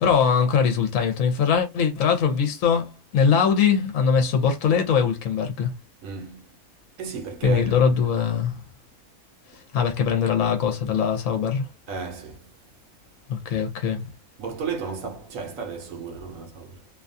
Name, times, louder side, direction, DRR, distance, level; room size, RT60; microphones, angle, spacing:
voice 1, 0.0-5.7 7.4-8.6 9.5-11.7 13.3-14.1, left 6 dB, 70° left, 1.0 m, -22 dB
voice 2, 6.0-6.5 7.0-8.1 11.9-12.5 14.4-16.9, right 6 dB, 70° right, 1.0 m, -34 dB
2.7 x 2.3 x 2.5 m
omnidirectional pair, 1.5 m